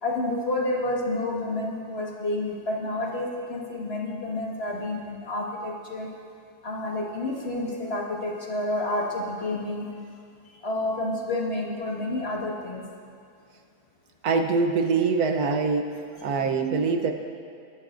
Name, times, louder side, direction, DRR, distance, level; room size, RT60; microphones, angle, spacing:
voice 1, 0.0-6.1 6.6-9.9 10.6-12.8 16.3-16.4, left 2 dB, 40° left, -3 dB, 1.8 m, -29 dB
voice 2, 14.2-15.9 16.2-17.1, right 4 dB, 75° right, 5 dB, 1.4 m, -24 dB
22.0 x 12.5 x 2.6 m, 2.3 s
omnidirectional pair, 1.6 m